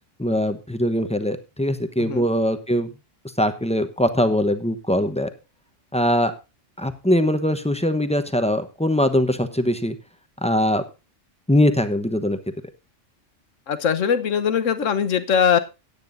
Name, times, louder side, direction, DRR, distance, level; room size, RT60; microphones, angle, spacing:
voice 1, 0.2-2.9 3.4-5.3 5.9-6.3 6.8-10.0 10.4-10.8 11.5-12.4, left 1 dB, 5° left, 8 dB, 0.8 m, -21 dB
voice 2, 13.7-15.6, left 7 dB, 85° left, 11 dB, 1.4 m, -21 dB
18.0 x 9.1 x 2.6 m, 0.27 s
omnidirectional pair, 1.3 m